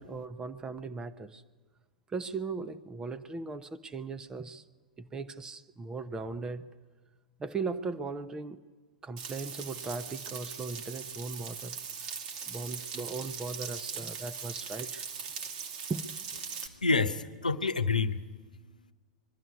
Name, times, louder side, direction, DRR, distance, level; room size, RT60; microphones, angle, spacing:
voice 1, 0.0-1.4 2.1-4.6 5.0-6.7 7.4-8.6 9.0-11.8 12.5-15.0 15.9-16.1, right 4 dB, 15° right, 0.9 m, -38 dB
Frying (food), 9.2-16.7, right 6 dB, 50° right, 2.3 m, -40 dB
voice 2, 16.5-18.9, left 4 dB, 85° left, 0.9 m, -30 dB
22.0 x 12.5 x 9.5 m
figure-of-eight pair, 100°, 4 cm